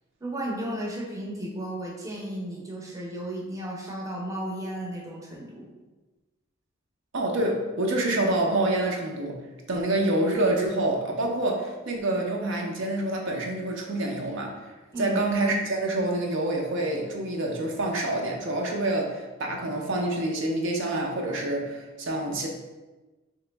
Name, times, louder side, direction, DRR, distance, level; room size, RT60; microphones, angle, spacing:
voice 1, 0.2-5.7 14.9-15.2, right 1 dB, 15° right, -3 dB, 0.6 m, -34 dB
voice 2, 7.1-9.4 9.7-14.6 15.0-22.5, right 1 dB, 60° right, 0 dB, 0.5 m, -27 dB
3.4 x 2.9 x 3.3 m, 1.2 s
head